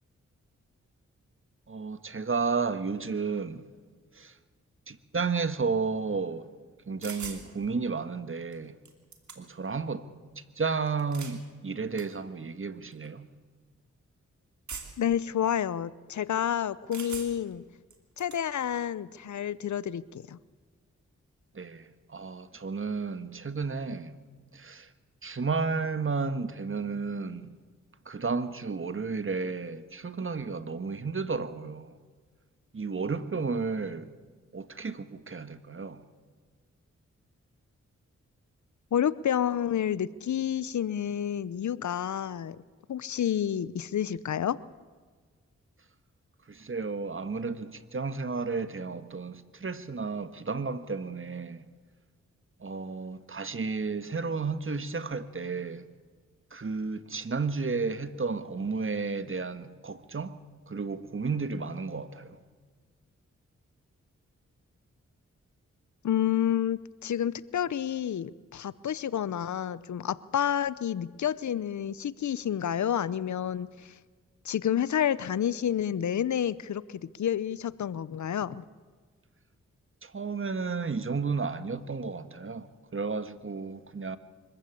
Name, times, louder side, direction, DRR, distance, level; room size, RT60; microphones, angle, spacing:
voice 1, 1.7-3.6 4.1-4.3 4.9-6.5 6.9-8.7 9.4-10.1 10.5-13.3 21.5-24.2 24.5-24.9 25.2-27.5 28.0-31.9 32.7-34.1 34.5-36.0 46.5-51.7 52.6-55.8 56.5-60.4 60.7-62.4 80.0-84.2, right 4 dB, 45° right, 1.5 m, -32 dB
sound 1, 7.0-7.4 8.5-8.6 8.9-9.7 10.9-11.4 12.0-12.1 12.9-13.1 14.7-15.1 16.9-17.5 17.9-18.4, right 5 dB, 70° right, 2.9 m, -41 dB
voice 2, 15.0-17.6 18.2-20.4 38.9-42.6 42.9-44.6 66.0-73.7 74.4-78.6, left 9 dB, 70° left, 0.7 m, -29 dB
24.0 x 15.0 x 8.5 m
cardioid pair, 45°, 30 cm